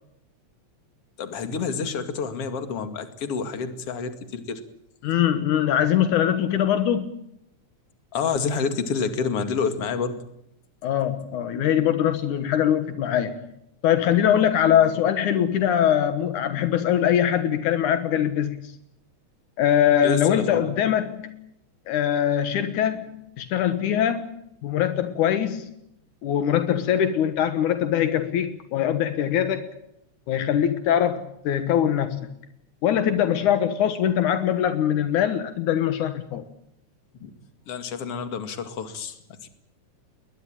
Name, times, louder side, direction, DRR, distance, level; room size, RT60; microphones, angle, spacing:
voice 1, 1.2-4.6 8.1-10.2 20.0-20.6 37.2-37.3 37.7-39.5, left 5 dB, 50° left, 9 dB, 3.1 m, -28 dB
voice 2, 5.0-7.1 10.8-13.4 13.8-18.6 19.6-21.3 21.9-24.3 24.6-25.7 26.2-29.7 30.3-32.3 32.8-36.4, left 10 dB, 80° left, 10 dB, 2.8 m, -22 dB
21.5 x 21.0 x 8.9 m, 0.79 s
omnidirectional pair, 3.5 m